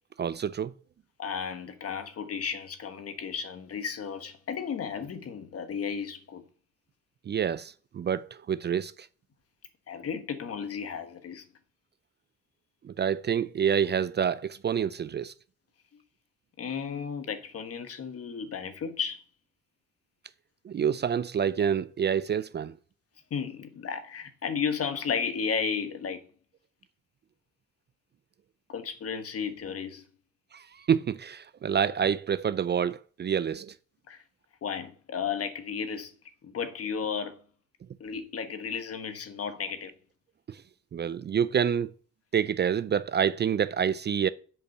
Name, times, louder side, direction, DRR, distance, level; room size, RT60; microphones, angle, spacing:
voice 1, 0.2-0.7 7.3-9.1 12.8-15.3 20.6-22.8 30.5-33.7 40.5-40.6 40.9-41.9 42.3-44.3, right 8 dB, 35° right, 0.4 m, -27 dB
voice 2, 1.2-6.4 9.9-11.4 16.6-19.2 23.3-26.2 28.7-30.0 34.1-34.2 34.6-36.1 36.4-37.3 38.0-39.9, left 6 dB, 50° left, 1.3 m, -33 dB
7.2 x 5.3 x 6.5 m
cardioid pair, 90°, 30 cm